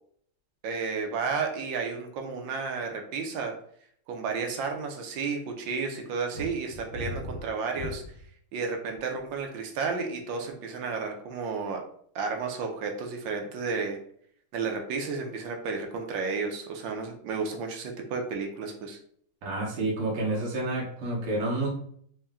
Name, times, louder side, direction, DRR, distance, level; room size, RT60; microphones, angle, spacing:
voice 1, 0.6-3.5 4.1-8.0 8.5-11.8 12.1-14.0 14.5-19.0, right 4 dB, 70° right, 3 dB, 1.3 m, -32 dB
sound 1, 6.3-8.3 8.9-9.4, equal, 45° right, 0.8 m, -38 dB
voice 2, 19.4-21.7, right 2 dB, 85° right, -3 dB, 1.9 m, -29 dB
4.2 x 2.2 x 3.5 m, 0.62 s
omnidirectional pair, 2.4 m